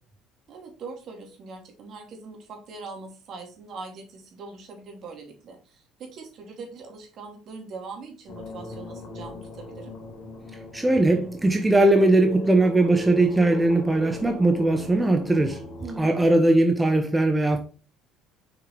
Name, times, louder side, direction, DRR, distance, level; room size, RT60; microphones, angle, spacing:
voice 1, 0.5-9.9 15.8-16.3, right 4 dB, 55° right, 2.9 m, -41 dB
sound 1, 8.3-16.0, left 1 dB, 50° left, 2.1 m, -39 dB
voice 2, 10.7-15.6 16.0-17.6, right 2 dB, 10° right, 1.0 m, -20 dB
6.4 x 5.7 x 3.4 m
supercardioid pair, 85°, 0 cm